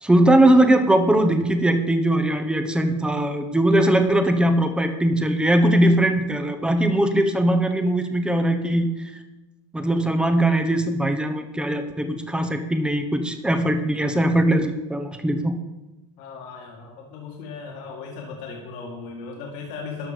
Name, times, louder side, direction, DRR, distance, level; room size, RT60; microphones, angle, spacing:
voice 1, 0.0-8.9 9.7-15.5, right 1 dB, 5° right, 7 dB, 1.2 m, -20 dB
voice 2, 16.2-20.1, left 4 dB, 65° left, -1 dB, 2.2 m, -37 dB
12.5 x 6.0 x 5.2 m, 1.1 s
supercardioid pair, 110°, 15 cm